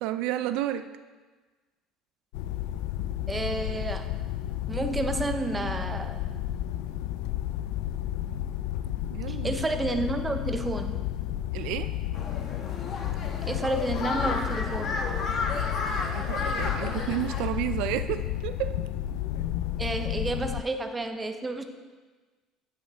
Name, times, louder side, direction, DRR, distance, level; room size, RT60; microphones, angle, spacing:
voice 1, 0.0-0.9 9.0-9.6 11.5-11.9 16.1-18.7, right 13 dB, 75° right, 11 dB, 0.3 m, -31 dB
sound 1, 2.3-20.6, left 12 dB, 85° left, 0.3 m, -32 dB
voice 2, 3.3-4.2 4.7-6.2 9.3-11.1 13.5-15.0 19.8-21.6, right 2 dB, 15° right, 6 dB, 0.5 m, -30 dB
sound 2, 12.1-17.5, left 3 dB, 40° left, 1.1 m, -33 dB
8.8 x 7.7 x 3.4 m, 1.3 s
cardioid pair, 155°, 0 cm